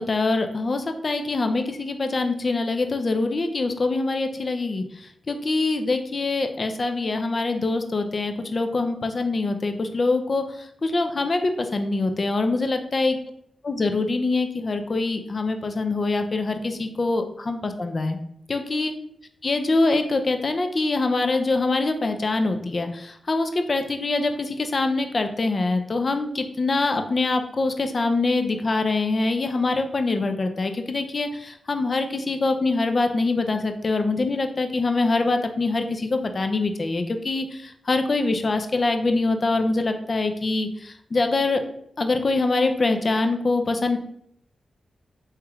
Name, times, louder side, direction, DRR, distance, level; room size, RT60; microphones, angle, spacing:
voice 1, 0.0-13.2 13.6-18.2 18.5-18.9 19.4-41.6 42.0-44.0, left 3 dB, 50° left, 6 dB, 0.4 m, -24 dB
3.2 x 2.9 x 2.3 m, 0.71 s
supercardioid pair, 40°, 0 cm